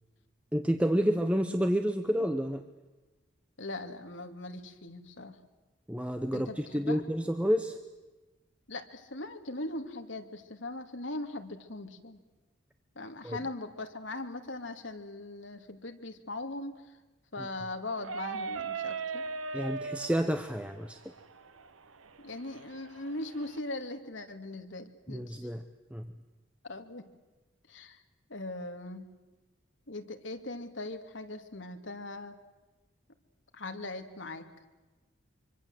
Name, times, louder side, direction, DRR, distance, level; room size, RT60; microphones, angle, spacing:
voice 1, 0.5-2.6 5.9-7.8 13.2-13.4 19.5-21.0 25.1-25.6 25.9-26.1, equal, 5° right, 7 dB, 0.9 m, -29 dB
voice 2, 3.6-5.4 6.3-7.0 8.7-12.2 13.0-17.0 17.3-19.3 22.2-25.5 26.6-27.0 27.7-28.0 28.3-29.1 29.9-32.4 33.5-34.5, left 2 dB, 65° left, 6 dB, 2.3 m, -40 dB
sound 1, 18.0-23.6, right 4 dB, 90° right, 1.1 m, -39 dB
25.0 x 25.0 x 7.8 m, 1.2 s
head